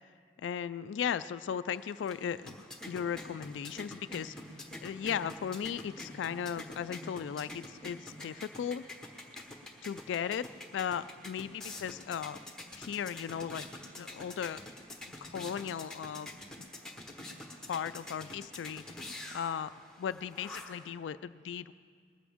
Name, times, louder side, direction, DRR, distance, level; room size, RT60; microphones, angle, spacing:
voice 1, 0.4-2.6 2.9-8.8 9.8-10.5 10.7-12.4 12.7-13.7 14.0-14.6 15.2-16.3 17.7-19.1 19.3-21.7, left 8 dB, 85° left, 13 dB, 0.3 m, -36 dB
sound 1, 1.7-20.9, left 1 dB, 5° left, 1.1 m, -47 dB
20.0 x 14.5 x 3.6 m, 2.1 s
head